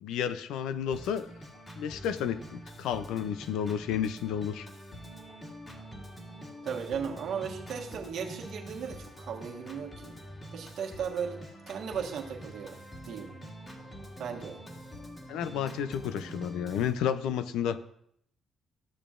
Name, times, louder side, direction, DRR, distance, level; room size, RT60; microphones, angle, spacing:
voice 1, 0.0-1.3 1.7-4.7 15.3-17.8, left 8 dB, 90° left, 12 dB, 0.5 m, -31 dB
Organ, 0.9-16.9, equal, 30° left, 2.1 m, -46 dB
voice 2, 6.6-10.2 10.5-11.4 11.7-12.8 13.1-13.3 14.2-14.6, right 7 dB, 70° right, 1 dB, 1.4 m, -36 dB
14.5 x 6.9 x 2.5 m, 0.70 s
cardioid pair, 90°, 0 cm